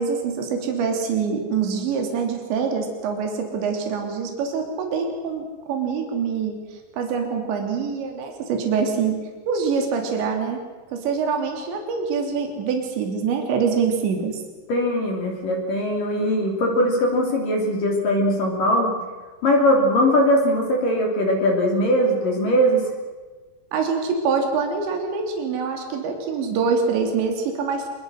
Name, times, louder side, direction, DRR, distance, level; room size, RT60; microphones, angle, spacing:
voice 1, 0.0-6.5 6.9-9.2 9.5-10.6 10.9-14.4 23.7-27.9, right 5 dB, 75° right, 3 dB, 5.2 m, -25 dB
voice 2, 14.7-19.0 19.4-22.9, equal, 50° left, 0 dB, 4.5 m, -20 dB
27.5 x 22.0 x 6.5 m, 1.3 s
omnidirectional pair, 5.3 m